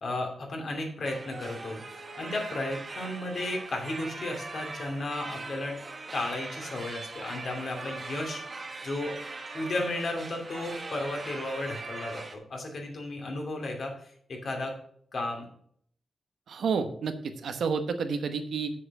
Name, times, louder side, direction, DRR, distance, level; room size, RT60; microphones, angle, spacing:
voice 1, 0.0-1.8 2.2-5.8 6.1-8.4 8.8-9.2 9.5-14.7 15.1-15.5, left 2 dB, 60° left, 1 dB, 2.6 m, -34 dB
sound 1, 1.0-12.3, right 3 dB, 35° right, 1.3 m, -41 dB
voice 2, 16.5-18.7, right 5 dB, 85° right, 8 dB, 1.0 m, -30 dB
7.4 x 6.7 x 5.4 m, 0.63 s
wide cardioid pair, 105°, 0 cm